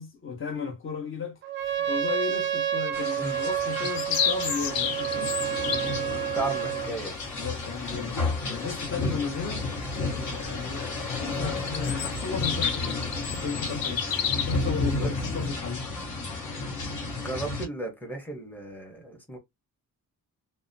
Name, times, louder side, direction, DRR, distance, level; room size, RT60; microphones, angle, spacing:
voice 1, 0.0-1.4 1.6-5.3 7.4-9.6 10.2-14.1 14.3-15.8, left 6 dB, 35° left, 0.8 m, -35 dB
Trumpet, 1.4-6.9, right 10 dB, 35° right, 0.4 m, -29 dB
sound 1, 2.9-17.6, left 3 dB, 60° left, 1.0 m, -32 dB
sound 2, 3.4-6.0 11.5-14.6, left 8 dB, 85° left, 0.7 m, -30 dB
voice 2, 6.3-7.1 15.0-15.1 17.2-19.4, right 2 dB, 5° left, 0.8 m, -34 dB
2.7 x 2.1 x 2.5 m
wide cardioid pair, 165°, 34 cm